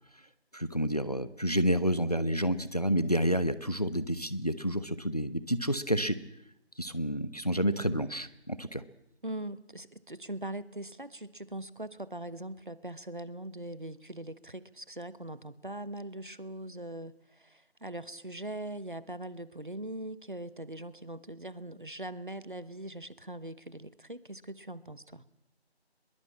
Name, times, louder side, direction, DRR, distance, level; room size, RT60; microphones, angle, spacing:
voice 1, 0.5-6.2 6.8-8.8, equal, 35° left, 14 dB, 1.0 m, -29 dB
voice 2, 9.2-25.2, right 1 dB, 50° right, 16 dB, 1.2 m, -41 dB
22.0 x 22.0 x 8.6 m, 0.80 s
figure-of-eight pair, 180°, 33 cm